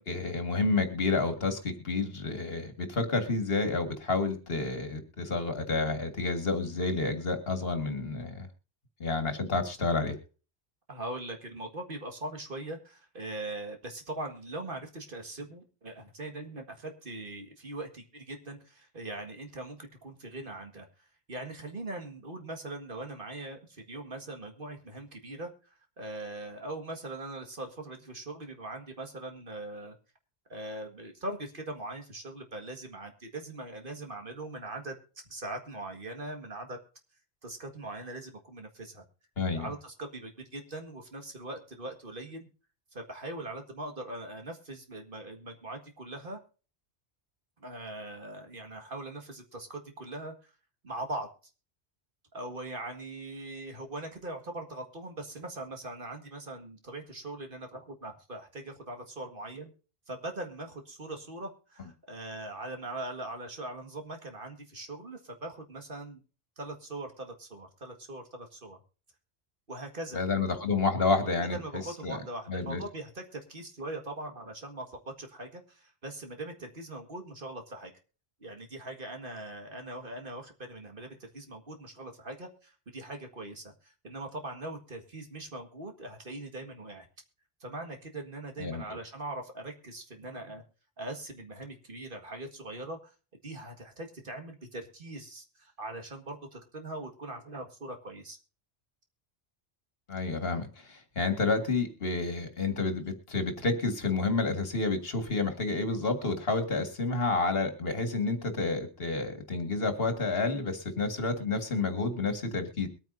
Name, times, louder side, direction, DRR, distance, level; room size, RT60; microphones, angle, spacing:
voice 1, 0.1-8.5 9.0-10.2 39.4-39.7 70.1-71.6 72.0-72.2 72.5-72.8 88.6-88.8 100.1-112.9, left 3 dB, 60° left, 7 dB, 2.1 m, -30 dB
voice 2, 10.9-20.9 21.3-30.0 30.5-36.8 37.4-39.0 39.5-42.5 42.9-46.4 47.6-50.5 50.8-51.3 52.3-59.7 60.1-66.2 66.6-68.8 69.7-70.2 71.4-77.9 78.4-87.1 87.6-90.6 91.0-93.1 93.4-98.4, right 2 dB, 50° right, 5 dB, 2.0 m, -41 dB
22.5 x 9.2 x 2.7 m, 0.36 s
omnidirectional pair, 1.1 m